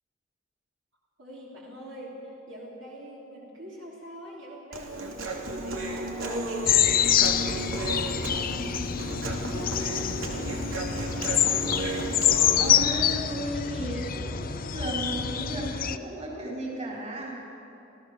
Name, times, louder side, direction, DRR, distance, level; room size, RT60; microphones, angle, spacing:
voice 1, 1.2-5.3 5.6-8.8 9.2-11.8, equal, 65° right, -4 dB, 3.7 m, -45 dB
Human voice, 4.7-12.7, right 1 dB, 85° right, 2.6 m, -33 dB
sound 1, 6.7-16.0, left 10 dB, 45° left, 0.7 m, -26 dB
voice 2, 12.6-17.3, right 1 dB, 35° right, -3 dB, 4.7 m, -34 dB
27.5 x 15.0 x 6.7 m, 2.8 s
head